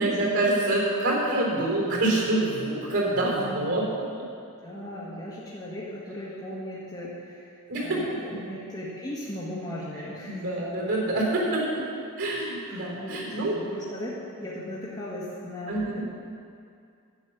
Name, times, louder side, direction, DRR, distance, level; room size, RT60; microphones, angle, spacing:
voice 1, 0.0-3.8 7.7-8.0 10.2-11.8 12.2-13.6 15.7-16.0, right 2 dB, 85° right, -3 dB, 3.5 m, -26 dB
voice 2, 3.3-3.8 4.6-10.4 12.6-14.1 14.4-16.0, left 1 dB, 20° left, -8 dB, 1.7 m, -37 dB
10.5 x 8.3 x 7.2 m, 2.4 s
head